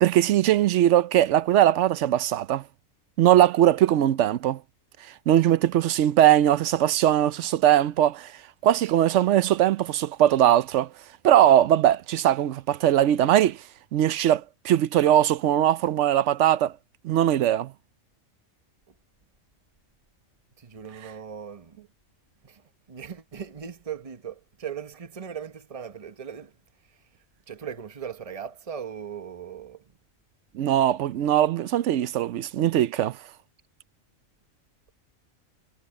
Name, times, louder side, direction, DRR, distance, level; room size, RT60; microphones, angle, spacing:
voice 1, 0.0-2.6 3.2-4.6 5.3-8.3 8.6-10.9 11.2-13.6 13.9-16.7 17.0-17.7 30.5-33.2, right 12 dB, 65° right, 0.9 m, -20 dB
voice 2, 20.6-21.8 22.4-27.2 27.5-30.0, right 7 dB, 25° right, 1.1 m, -39 dB
omnidirectional pair, 1.4 m